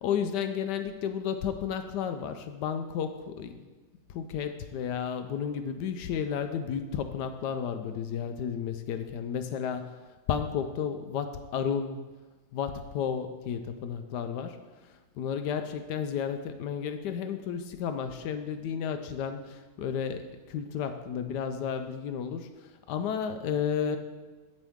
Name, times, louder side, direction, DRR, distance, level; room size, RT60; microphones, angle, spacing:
voice 1, 0.0-3.6 4.1-10.0 10.3-12.0 12.5-14.6 15.2-22.5 22.9-24.0, left 7 dB, 85° left, 8 dB, 1.2 m, -32 dB
8.6 x 8.1 x 3.5 m, 1.2 s
omnidirectional pair, 1.8 m